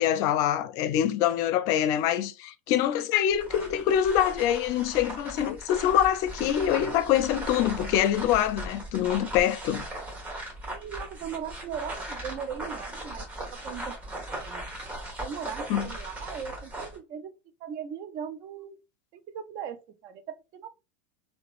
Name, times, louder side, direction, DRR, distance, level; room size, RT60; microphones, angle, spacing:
voice 1, 0.0-9.9 15.7-15.9, left 11 dB, 55° left, 0.4 m, -25 dB
sound 1, 3.3-17.0, right 1 dB, 20° right, 1.3 m, -38 dB
voice 2, 10.7-14.9 15.2-17.3 17.6-18.8 19.1-20.7, right 8 dB, 50° right, 0.5 m, -39 dB
2.9 x 2.2 x 2.4 m
hypercardioid pair, 105°, 7 cm